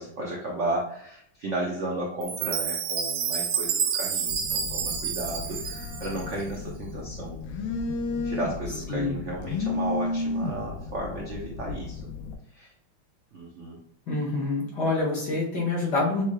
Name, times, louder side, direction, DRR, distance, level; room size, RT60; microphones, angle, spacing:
voice 1, 0.0-7.4 8.2-12.0 12.5-12.7 13.3-13.8, right 1 dB, 55° right, -2 dB, 0.8 m, -34 dB
Chime, 2.2-6.4, right 7 dB, 70° right, 1.3 m, -29 dB
Telephone, 4.3-12.3, left 3 dB, 75° left, 1.4 m, -33 dB
voice 2, 8.9-9.2 14.1-16.2, left 3 dB, 55° left, -4 dB, 2.2 m, -26 dB
7.0 x 3.3 x 2.2 m, 0.69 s
omnidirectional pair, 2.4 m